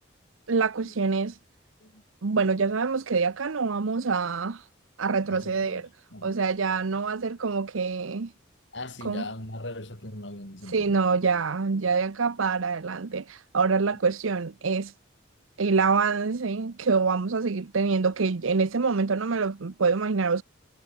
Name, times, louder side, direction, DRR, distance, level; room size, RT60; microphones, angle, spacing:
voice 1, 0.5-1.4 2.2-4.7 5.0-5.9 6.2-8.3 9.0-9.2 10.7-14.9 15.6-20.4, right 4 dB, 85° right, 0.8 m, -26 dB
voice 2, 5.3-5.8 6.1-6.4 8.7-11.0, left 1 dB, 65° left, 7.3 m, -39 dB
head